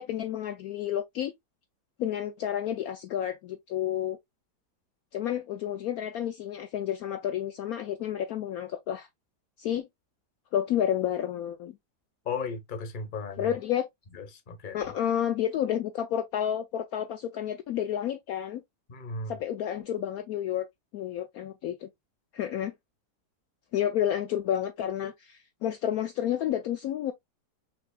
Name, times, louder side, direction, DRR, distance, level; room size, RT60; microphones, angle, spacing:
voice 1, 0.0-1.3 2.0-4.2 5.1-9.1 9.6-9.9 10.5-11.7 13.4-13.9 14.7-18.6 19.3-20.7 20.9-21.9 22.3-22.7 23.7-27.1, left 10 dB, 70° left, 1.0 m, -30 dB
voice 2, 12.2-13.5 14.1-14.8 18.9-19.4, left 4 dB, 35° left, 1.1 m, -35 dB
5.9 x 3.5 x 2.2 m
omnidirectional pair, 1.8 m